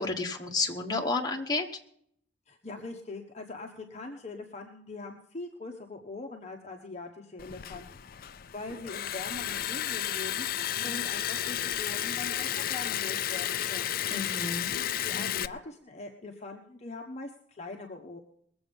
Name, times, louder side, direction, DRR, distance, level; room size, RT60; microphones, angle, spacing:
voice 1, 0.0-1.7 14.1-14.7, left 3 dB, 20° left, 1 dB, 1.6 m, -31 dB
voice 2, 2.5-14.0 15.0-18.2, left 3 dB, 40° left, 3 dB, 1.1 m, -42 dB
Liquid, 7.4-15.5, left 11 dB, 55° left, 0.4 m, -32 dB
21.5 x 7.9 x 5.4 m, 0.67 s
head